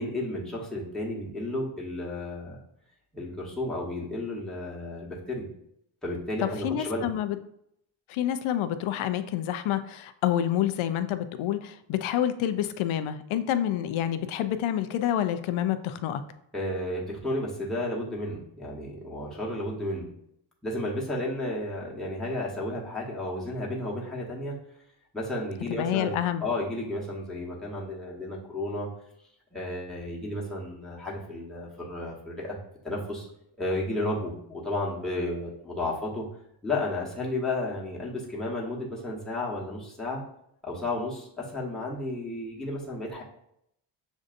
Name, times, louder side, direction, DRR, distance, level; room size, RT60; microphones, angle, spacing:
voice 1, 0.0-2.6 3.1-5.5 6.0-7.1 16.5-20.1 20.6-24.6 25.1-28.9 29.5-32.6 32.8-33.3 33.6-36.3 36.6-40.2 40.6-43.2, left 1 dB, ahead, -5 dB, 1.1 m, -32 dB
voice 2, 6.6-7.4 8.1-16.2 25.7-26.5, left 11 dB, 75° left, 11 dB, 0.5 m, -28 dB
6.1 x 2.6 x 2.5 m, 0.74 s
cardioid pair, 90°, 49 cm